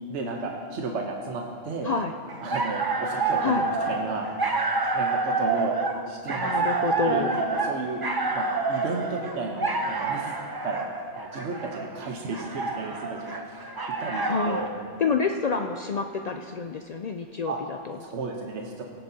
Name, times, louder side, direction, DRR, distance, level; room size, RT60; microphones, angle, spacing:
voice 1, 0.1-1.9 2.4-4.6 4.9-5.8 6.1-6.5 7.0-7.2 7.6-8.0 8.3-10.3 10.6-10.9 11.1-14.7 17.5-17.6 18.0-18.8, right 3 dB, 70° right, 1 dB, 1.2 m, -33 dB
sound 1, 2.3-14.7, right 3 dB, 30° right, 0.5 m, -28 dB
voice 2, 6.4-7.4 14.3-14.6 15.0-18.0, left 5 dB, 80° left, 5 dB, 0.3 m, -28 dB
17.5 x 9.9 x 2.8 m, 2.1 s
omnidirectional pair, 1.2 m